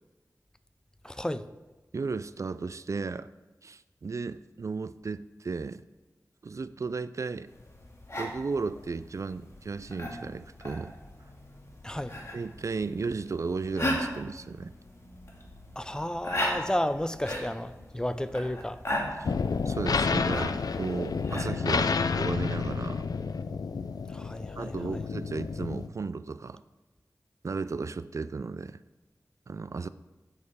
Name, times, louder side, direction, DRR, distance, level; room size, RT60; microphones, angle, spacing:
voice 1, 1.0-1.5 11.8-12.2 15.8-18.8 24.1-25.0, left 1 dB, 10° left, 0.4 m, -32 dB
voice 2, 1.9-3.3 3.6-5.8 6.4-7.5 8.2-10.9 12.3-14.7 19.2-19.3 19.7-23.0 24.6-26.6 27.4-28.8 29.5-29.9, right 4 dB, 55° right, 0.3 m, -34 dB
sound 1, 7.5-21.5, left 1 dB, 50° left, 2.0 m, -37 dB
sound 2, 19.2-25.9, left 5 dB, 80° left, 0.4 m, -30 dB
10.5 x 8.8 x 3.6 m
wide cardioid pair, 90°, 6 cm